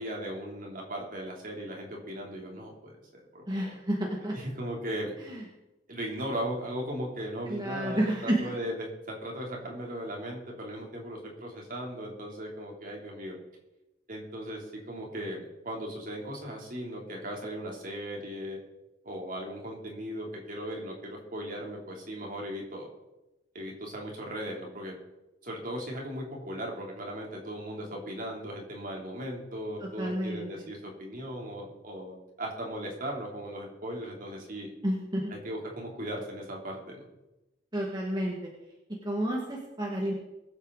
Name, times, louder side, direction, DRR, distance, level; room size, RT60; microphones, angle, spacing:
voice 1, 0.0-3.8 4.3-5.1 5.9-13.4 14.1-18.6 19.0-22.9 23.5-24.9 25.4-34.7 35.3-37.1, equal, 50° right, -1 dB, 3.4 m, -37 dB
voice 2, 3.5-4.3 5.2-5.4 7.5-8.5 29.8-30.7 34.8-35.4 37.7-38.5 39.0-40.1, right 1 dB, 25° right, -2 dB, 2.1 m, -30 dB
22.0 x 8.4 x 4.1 m, 0.99 s
head